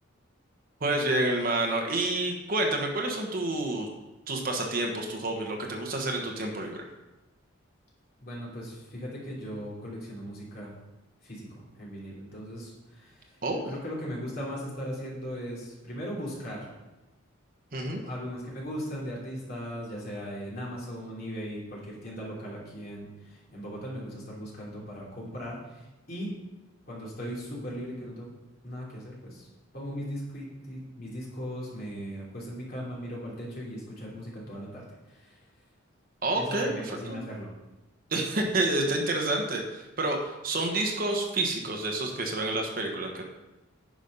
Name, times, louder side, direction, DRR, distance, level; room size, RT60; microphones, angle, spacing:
voice 1, 0.8-3.9 4.3-6.9 13.4-13.7 17.7-18.0 36.2-36.7 37.1-37.2 38.1-43.2, right 2 dB, 45° right, 2 dB, 1.2 m, -29 dB
voice 2, 8.2-10.7 11.2-13.3 13.6-16.7 17.8-26.3 26.9-28.3 28.6-29.5 29.7-35.4 36.3-37.5, equal, 45° left, -5 dB, 3.0 m, -38 dB
10.0 x 5.4 x 5.5 m, 1.0 s
head